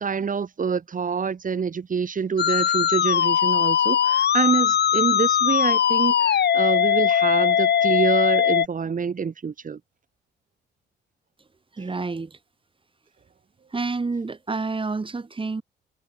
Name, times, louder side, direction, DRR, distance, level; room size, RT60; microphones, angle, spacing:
voice 1, 0.0-9.8 11.8-11.9, right 6 dB, 40° right, 6.4 m, -26 dB
Musical instrument, 2.4-8.7, left 9 dB, 55° left, 2.4 m, -20 dB
voice 2, 11.7-12.4 13.7-15.6, right 3 dB, 25° right, 6.2 m, -29 dB
cardioid pair, 90°, 20 cm